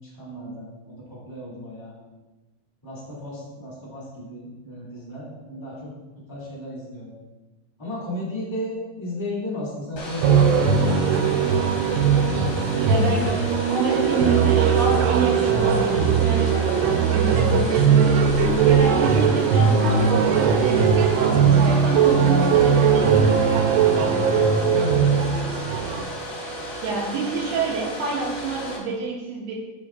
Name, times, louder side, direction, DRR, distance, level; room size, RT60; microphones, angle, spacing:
voice 1, 0.0-1.9 2.8-5.9 6.3-7.1 7.8-10.4 10.9-11.7 24.7-25.1, left 1 dB, 35° left, -9 dB, 0.4 m, -34 dB
Domestic sounds home sounds, 9.9-28.8, equal, 60° left, 2.2 m, -34 dB
sound 1, 10.2-26.0, right 6 dB, 90° right, 3.1 m, -19 dB
voice 2, 12.9-13.4 13.7-18.2 18.6-20.9 21.5-23.7 26.8-29.5, right 3 dB, 70° right, -2 dB, 3.0 m, -28 dB
11.5 x 5.8 x 2.4 m, 1.2 s
omnidirectional pair, 5.3 m